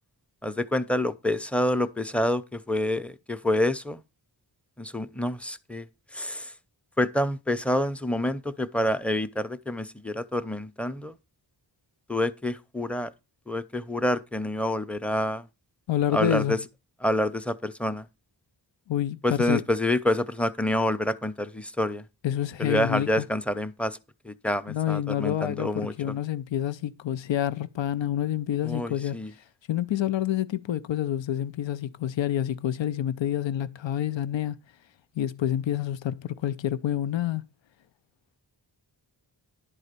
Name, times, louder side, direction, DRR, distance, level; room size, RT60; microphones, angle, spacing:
voice 1, 0.4-4.0 4.8-5.9 6.1-6.5 7.0-11.1 12.1-13.1 13.5-15.4 16.1-16.6 17.0-18.1 19.2-22.0 22.6-24.0 24.2-26.1 28.6-29.3, left 1 dB, 5° left, 0.7 m, -27 dB
voice 2, 15.9-16.6 18.9-19.6 22.2-23.2 24.7-29.2 29.7-34.6 35.2-37.4, left 11 dB, 80° left, 0.6 m, -28 dB
11.0 x 4.1 x 6.7 m
wide cardioid pair, 70°, 44 cm